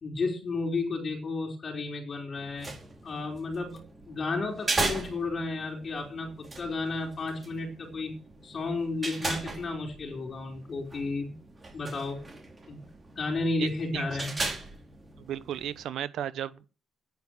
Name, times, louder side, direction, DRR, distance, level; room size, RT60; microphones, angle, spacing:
voice 1, 0.0-2.7 3.0-8.1 8.4-11.3 11.7-12.2 12.7-12.8 13.2-14.3, left 3 dB, 50° left, 4.1 m, -32 dB
sound 1, 2.4-15.8, right 3 dB, 30° right, 3.9 m, -38 dB
voice 2, 13.6-14.0 15.2-16.8, right 10 dB, 80° right, 0.8 m, -35 dB
9.6 x 8.6 x 6.5 m
cardioid pair, 70°, 0 cm